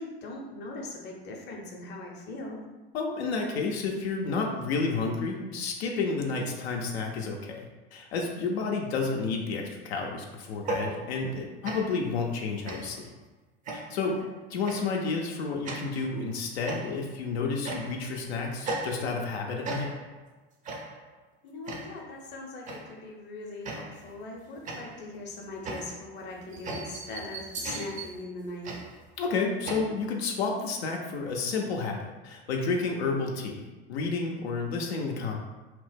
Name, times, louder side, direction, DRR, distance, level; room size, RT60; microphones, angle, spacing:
voice 1, 0.0-2.7 14.2-14.4 21.4-28.8, left 2 dB, 35° left, 0 dB, 0.7 m, -40 dB
voice 2, 2.9-13.1 13.7-14.2 14.5-19.9 29.2-35.4, left 4 dB, 80° left, 0 dB, 0.5 m, -31 dB
sound 1, 10.5-11.4 11.6-12.1 12.7-13.1 13.7-14.1 14.7-15.0 15.7-16.1 16.7-17.2 17.6-18.2 18.6-19.3 19.6-20.2 20.7-21.1 21.7-22.1 22.7-23.0 23.6-24.1 24.7-29.8, right 2 dB, 25° right, 0.5 m, -38 dB
2.9 x 2.0 x 3.3 m, 1.2 s
hypercardioid pair, 90°, 31 cm